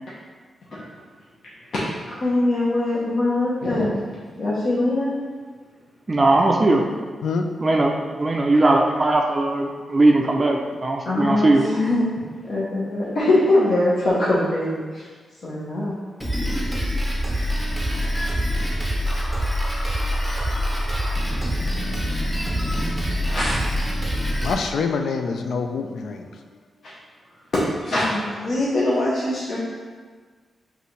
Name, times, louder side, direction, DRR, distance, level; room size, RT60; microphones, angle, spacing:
voice 1, 2.2-4.0 4.4-5.1 11.0-12.0 12.4-15.1 15.4-16.0 23.3-23.6 26.8-26.9 27.5-29.6, left 1 dB, 65° left, -8 dB, 0.9 m, -22 dB
voice 2, 6.1-6.8 7.6-11.6, right 2 dB, 30° right, 1 dB, 0.4 m, -19 dB
Drum kit, 16.2-24.5, equal, ahead, 0.7 m, -24 dB
voice 3, 24.4-26.3, left 4 dB, 80° left, 5 dB, 0.3 m, -25 dB
5.5 x 2.5 x 3.1 m, 1.5 s
wide cardioid pair, 110°, 0 cm